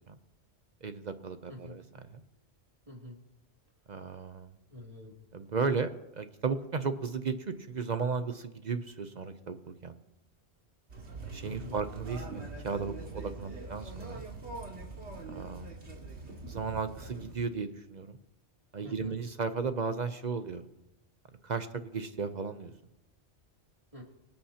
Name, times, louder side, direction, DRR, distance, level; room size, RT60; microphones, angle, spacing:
voice 1, 0.8-2.2 3.9-4.5 5.3-10.0 11.3-14.2 15.3-15.7 16.5-18.2 18.7-20.6 21.4-21.7 21.9-22.7, right 5 dB, 45° right, 9 dB, 0.7 m, -35 dB
voice 2, 2.9-3.2 4.7-5.1 11.4-11.8 18.8-19.2 23.9-24.0, left 1 dB, 30° right, -2 dB, 2.8 m, -46 dB
sound 1, 10.9-17.3, right 3 dB, 80° right, 2.3 m, -43 dB
24.5 x 8.8 x 2.8 m, 0.93 s
omnidirectional pair, 1.1 m